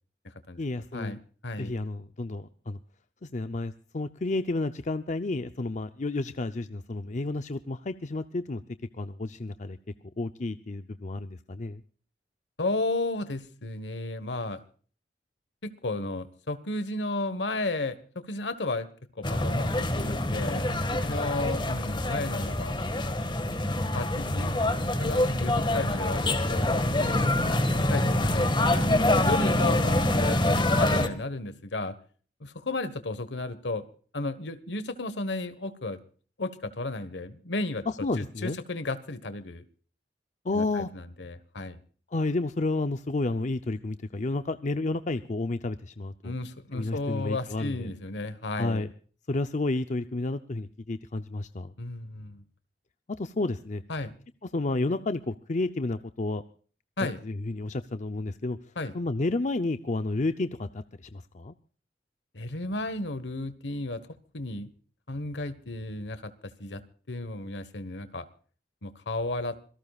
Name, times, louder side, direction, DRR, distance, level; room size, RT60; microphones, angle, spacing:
voice 1, 0.6-1.2 1.6-2.8 3.2-8.6 8.9-9.8 10.2-11.8 37.9-38.6 40.4-40.9 42.1-46.3 46.7-47.9 48.6-48.9 49.3-51.7 53.2-53.8 54.5-56.4 57.2-58.6 58.9-61.5, left 2 dB, 45° left, 10 dB, 0.6 m, -31 dB
voice 2, 12.6-14.6 15.6-18.9 19.1-22.7 23.9-24.5 25.0-26.6 27.0-27.3 27.7-31.9 32.4-33.8 34.1-36.0 36.4-37.8 38.2-39.6 40.5-41.8 46.2-48.8 51.8-52.4 53.9-54.1 57.0-57.2 58.8-58.9 62.3-64.0 64.3-64.7 65.1-66.3 66.6-66.8 67.1-68.3 68.8-69.6, left 2 dB, 85° left, 12 dB, 1.4 m, -33 dB
sound 1, 19.2-31.1, left 1 dB, 25° left, 1.8 m, -25 dB
26.0 x 18.0 x 2.4 m, 0.43 s
head